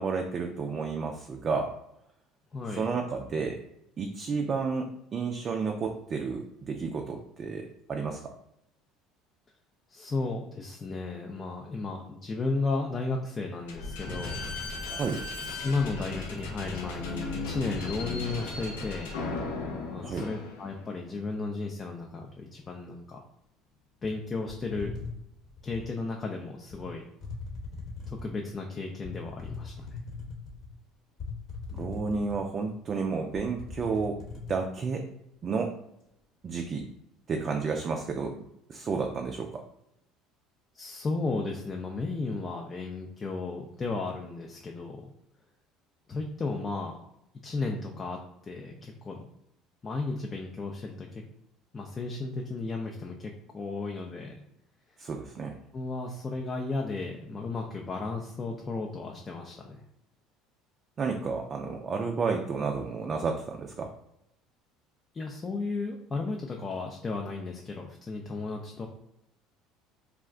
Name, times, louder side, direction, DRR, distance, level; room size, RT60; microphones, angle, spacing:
voice 1, 0.0-1.7 2.7-3.6 4.0-8.2 14.9-15.2 20.0-20.2 31.7-34.2 34.5-35.0 35.4-35.7 36.4-36.8 37.3-38.3 38.7-39.6 55.0-55.6 61.0-63.9, right 4 dB, 40° right, 2 dB, 0.4 m, -31 dB
voice 2, 2.5-2.9 9.9-14.4 15.6-19.1 19.9-23.2 24.0-25.0 25.6-27.1 28.1-30.0 40.7-45.1 46.1-46.9 47.4-48.2 48.4-49.3 49.8-51.2 51.7-54.3 55.7-59.8 65.1-68.9, left 3 dB, 30° left, 1 dB, 0.4 m, -34 dB
Slam / Squeak, 13.7-21.0, left 3 dB, 85° left, 0.6 m, -36 dB
sound 1, 24.5-25.9 26.7-26.9 27.2-28.4 29.0-30.7 31.2-32.6 33.0-33.1 33.3-34.5, left 4 dB, 55° left, 0.9 m, -40 dB
2.4 x 2.1 x 3.6 m, 0.79 s
supercardioid pair, 85°, 0 cm